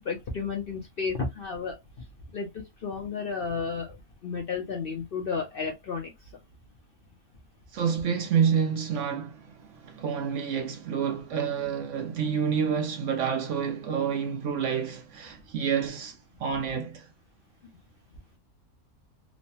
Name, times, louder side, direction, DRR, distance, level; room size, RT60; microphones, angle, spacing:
voice 1, 0.1-1.8 2.3-4.0 4.2-6.1, left 5 dB, 55° left, 0.6 m, -32 dB
voice 2, 7.7-17.1, right 7 dB, 65° right, 0.8 m, -28 dB
3.1 x 2.1 x 2.6 m
omnidirectional pair, 1.5 m